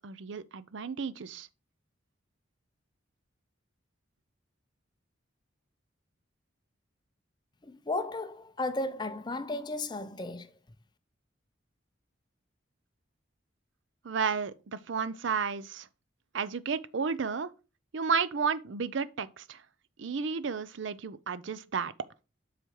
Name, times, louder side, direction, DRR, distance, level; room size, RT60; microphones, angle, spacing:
voice 1, 0.0-1.5 14.0-15.9 16.3-17.5 17.9-19.6 20.0-21.9, right 5 dB, 70° right, 0.5 m, -32 dB
voice 2, 7.6-10.5, left 2 dB, 20° left, 0.5 m, -34 dB
7.8 x 5.0 x 4.5 m
head